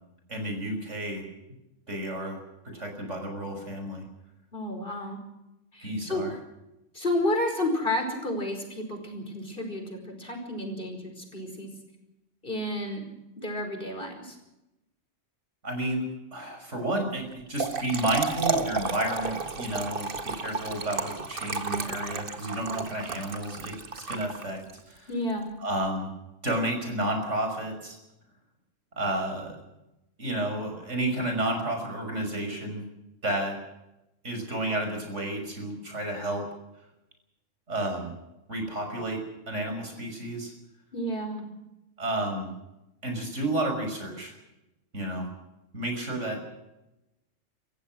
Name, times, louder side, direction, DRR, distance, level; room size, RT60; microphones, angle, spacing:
voice 1, 0.3-1.2 1.9-2.4 2.7-4.0 5.8-6.3 15.6-16.0 16.3-23.8 24.1-24.6 24.9-25.1 25.6-26.1 26.4-28.0 29.0-29.6 30.2-32.8 33.2-33.6 34.2-36.5 37.7-38.1 38.5-40.5 42.0-42.5 43.0-44.3 44.9-45.3 45.7-46.4, right 1 dB, 70° right, 3 dB, 6.2 m, -31 dB
voice 2, 4.5-5.2 5.7-6.2 6.9-11.7 12.4-13.0 13.4-14.4 25.1-25.5 40.9-41.5, left 1 dB, 45° left, 4 dB, 5.2 m, -31 dB
Trickle dribble / Fill (with liquid), 17.3-24.8, right 4 dB, 45° right, 1.7 m, -32 dB
27.5 x 15.0 x 6.3 m, 0.94 s
omnidirectional pair, 1.3 m